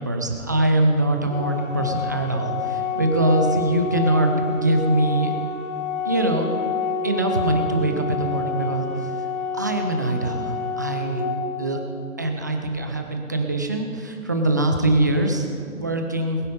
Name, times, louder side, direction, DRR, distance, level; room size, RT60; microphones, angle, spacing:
voice 1, 0.0-5.3 6.0-6.5 7.0-11.2 11.6-11.8 12.2-16.4, right 1 dB, 15° right, 4 dB, 0.5 m, -23 dB
Organ, 1.3-12.3, left 4 dB, 30° left, 1.2 m, -28 dB
20.5 x 9.1 x 5.3 m, 2.3 s
figure-of-eight pair, 135°, 42 cm